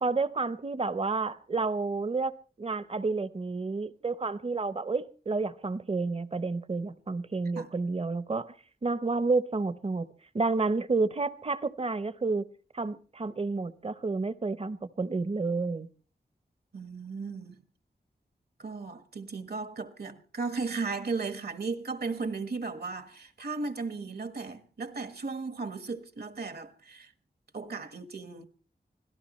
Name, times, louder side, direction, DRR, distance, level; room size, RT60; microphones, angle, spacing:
voice 1, 0.0-2.3 2.6-8.5 8.8-10.1 10.3-12.5 12.7-15.9, right 3 dB, 35° right, 0.8 m, -30 dB
voice 2, 16.7-17.6 18.6-27.1 27.5-28.4, right 4 dB, 70° right, 1.5 m, -36 dB
25.5 x 17.5 x 3.1 m
wide cardioid pair, 100°, 17 cm